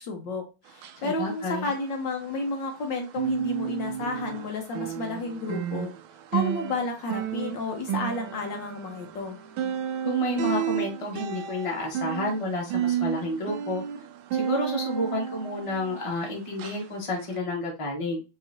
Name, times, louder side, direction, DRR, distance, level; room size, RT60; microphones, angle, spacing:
voice 1, 0.0-5.9 6.3-9.4, left 3 dB, 65° left, 2 dB, 1.6 m, -32 dB
sound 1, 0.7-2.8 3.1-16.2 16.6-16.8 17.3-17.4, right 9 dB, 85° right, 1.5 m, -32 dB
voice 2, 1.0-1.7 10.0-13.8 14.3-18.2, left 1 dB, 20° left, -1 dB, 1.2 m, -30 dB
5.6 x 3.1 x 2.7 m, 0.29 s
omnidirectional pair, 2.2 m